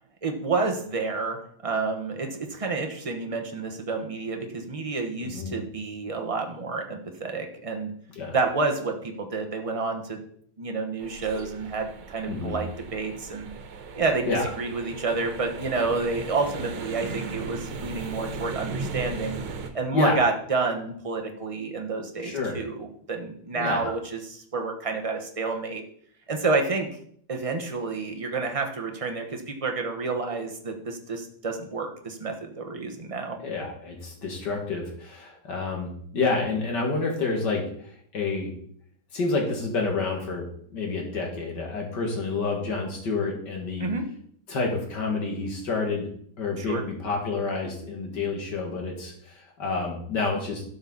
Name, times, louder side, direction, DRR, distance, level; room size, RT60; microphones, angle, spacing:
voice 1, 0.2-1.4 1.6-7.9 8.3-10.2 10.6-13.5 13.9-14.2 14.6-19.4 19.7-25.8 26.3-26.9 27.3-33.4 43.8-44.0 46.6-46.8, right 3 dB, 20° right, 3 dB, 1.0 m, -29 dB
voice 2, 5.2-5.5 8.1-8.4 12.3-12.6 14.2-14.4 19.9-20.2 22.2-22.6 23.5-23.9 33.4-38.5 39.1-40.4 40.7-43.9 44.5-46.1 46.4-50.6, left 3 dB, 60° left, 0 dB, 2.7 m, -28 dB
sound 1, 11.0-19.7, right 4 dB, 90° right, 1.9 m, -37 dB
12.0 x 6.9 x 4.1 m, 0.62 s
omnidirectional pair, 2.2 m